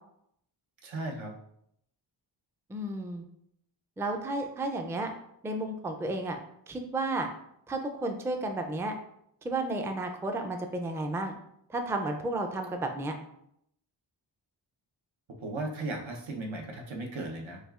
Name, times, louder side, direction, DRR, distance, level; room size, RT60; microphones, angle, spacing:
voice 1, 0.8-1.3 15.4-17.6, right 2 dB, 80° right, 1 dB, 0.8 m, -36 dB
voice 2, 2.7-3.2 4.0-5.1 5.4-6.4 6.7-7.3 7.7-9.0 9.4-11.3 11.7-13.1, right 2 dB, 5° right, 4 dB, 0.3 m, -32 dB
6.3 x 2.3 x 2.4 m, 0.74 s
wide cardioid pair, 75°, 47 cm